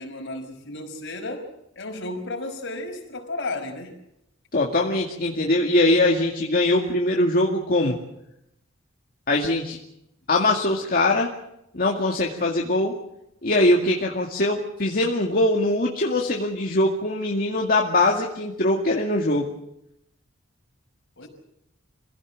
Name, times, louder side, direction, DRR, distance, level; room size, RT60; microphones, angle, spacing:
voice 1, 0.0-1.5 1.8-4.0 21.2-21.3, left 2 dB, 60° left, 4 dB, 5.4 m, -33 dB
voice 2, 4.5-8.0 9.3-9.8 10.3-11.3 11.7-12.9 13.4-19.5, left 2 dB, 45° left, 0 dB, 2.2 m, -22 dB
26.5 x 17.0 x 7.6 m, 0.83 s
head